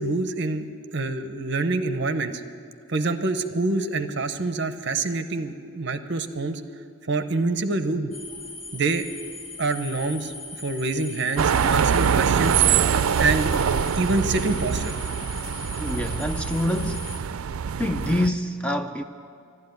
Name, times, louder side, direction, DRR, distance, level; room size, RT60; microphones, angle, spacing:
voice 1, 0.0-2.4 2.9-6.6 7.1-8.1 8.7-9.1 9.6-10.3 10.6-12.6 13.2-13.5 14.0-15.0, right 3 dB, 50° right, 0.8 m, -26 dB
sound 1, 8.1-17.2, left 3 dB, 80° left, 3.0 m, -39 dB
sound 2, 11.4-18.3, right 7 dB, 80° right, 0.4 m, -24 dB
voice 2, 15.7-17.2 17.8-19.0, left 1 dB, 5° left, 0.3 m, -26 dB
12.5 x 12.0 x 9.4 m
head